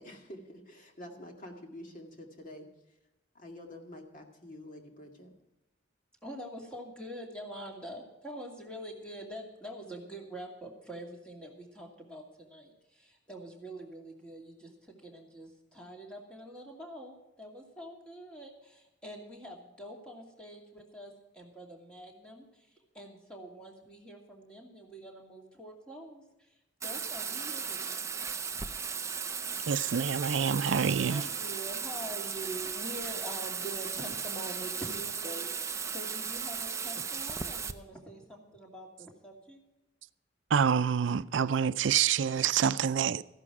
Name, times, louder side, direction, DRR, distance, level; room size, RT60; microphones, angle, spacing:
voice 1, 0.0-2.7 3.3-5.3, left 1 dB, 45° left, 2.1 m, -47 dB
voice 2, 6.2-22.7 22.9-26.5 26.8-28.1 31.1-39.6, right 1 dB, 5° left, 2.5 m, -45 dB
Bathtub (filling or washing), 26.8-37.7, right 6 dB, 15° right, 0.5 m, -36 dB
voice 3, 29.7-31.3 40.5-43.2, right 7 dB, 85° right, 0.4 m, -27 dB
14.5 x 11.0 x 4.8 m
head